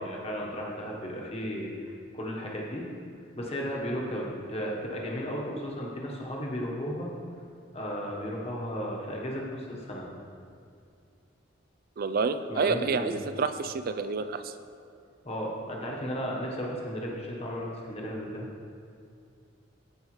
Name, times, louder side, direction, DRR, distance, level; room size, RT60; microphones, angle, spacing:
voice 1, 0.0-2.9 3.4-7.1 7.7-10.1 12.5-13.2 15.2-18.5, equal, 30° left, -2 dB, 1.2 m, -34 dB
voice 2, 12.0-14.5, right 5 dB, 45° right, 11 dB, 0.3 m, -29 dB
14.5 x 4.9 x 3.2 m, 2.4 s
head